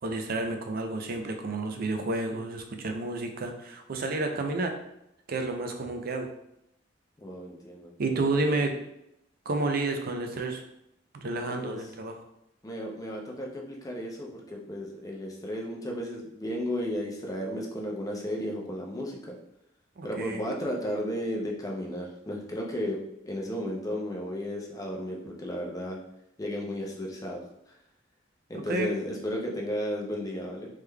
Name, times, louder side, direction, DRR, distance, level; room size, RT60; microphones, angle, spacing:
voice 1, 0.0-4.7 5.3-6.3 8.0-8.7 9.5-10.6 11.1-12.2 20.0-20.5 28.5-28.9, right 2 dB, 50° right, 4 dB, 0.4 m, -30 dB
voice 2, 7.2-8.6 11.3-11.8 12.6-19.3 20.0-23.0 23.3-26.0 26.4-27.4 28.5-30.7, equal, 20° left, -1 dB, 0.5 m, -34 dB
3.5 x 3.2 x 2.2 m, 0.80 s
head